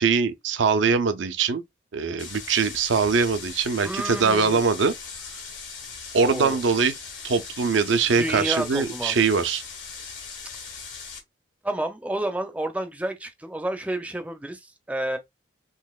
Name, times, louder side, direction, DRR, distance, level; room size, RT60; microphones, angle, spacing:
voice 1, 0.0-1.6 1.9-4.9 6.1-7.0 7.2-9.6, right 5 dB, 75° right, 0.5 m, -22 dB
sound 1, 2.2-11.2, left 5 dB, 80° left, 1.6 m, -39 dB
voice 2, 3.8-4.6 6.2-6.6 8.2-9.1 11.6-15.2, right 1 dB, 5° right, 0.5 m, -30 dB
3.9 x 2.9 x 2.3 m
head